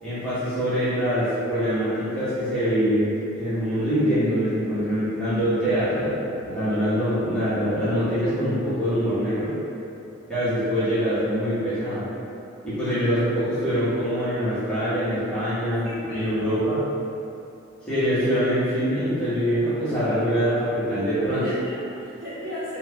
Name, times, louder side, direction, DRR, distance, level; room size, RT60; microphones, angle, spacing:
voice 1, 0.0-9.5 10.3-12.1 12.6-16.8 17.9-21.4, equal, 5° left, -15 dB, 0.9 m, -24 dB
voice 2, 15.8-16.5 21.4-22.8, equal, 45° right, -13 dB, 1.2 m, -36 dB
2.8 x 2.3 x 3.4 m, 2.8 s
head